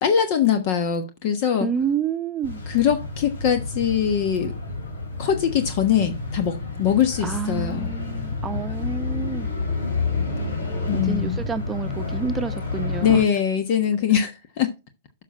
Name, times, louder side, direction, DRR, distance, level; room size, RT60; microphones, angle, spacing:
voice 1, 0.0-1.7 2.7-4.5 5.2-7.9 10.9-11.4 13.0-14.7, left 8 dB, 50° left, 1.2 m, -22 dB
voice 2, 1.6-2.6 7.2-9.5 10.9-13.2, right 6 dB, 15° right, 0.9 m, -29 dB
sound 1, 2.4-13.2, left 3 dB, 85° left, 4.6 m, -29 dB
7.2 x 5.9 x 5.2 m
hypercardioid pair, 125°, 0 cm